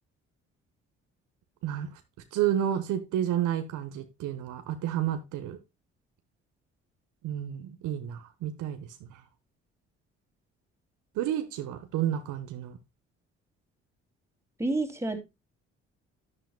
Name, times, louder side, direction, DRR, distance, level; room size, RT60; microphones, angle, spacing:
voice 1, 1.6-2.0 2.3-5.6 7.2-9.2 11.1-12.8, right 11 dB, 75° right, 1.3 m, -31 dB
voice 2, 14.6-15.2, right 2 dB, 10° right, 3.0 m, -28 dB
11.0 x 10.0 x 2.3 m
hypercardioid pair, 55°, 31 cm